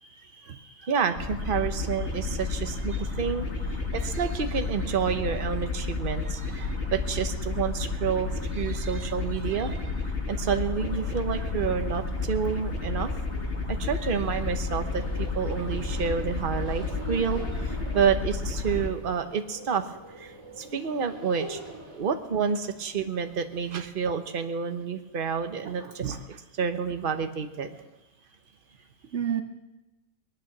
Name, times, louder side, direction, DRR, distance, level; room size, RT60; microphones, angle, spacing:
voice 1, 0.0-0.9 25.6-26.2 29.1-29.4, right 8 dB, 65° right, 6 dB, 1.0 m, -34 dB
voice 2, 0.8-3.5 3.9-9.9 10.3-13.1 13.7-19.8 20.2-21.6 21.9-26.2 26.6-27.8, right 6 dB, 45° right, 7 dB, 1.1 m, -29 dB
sound 1, 1.2-18.9, left 3 dB, 55° left, 2.2 m, -31 dB
sound 2, 10.7-24.4, right 2 dB, 20° right, 2.9 m, -45 dB
19.5 x 11.5 x 6.0 m, 1.1 s
omnidirectional pair, 1.4 m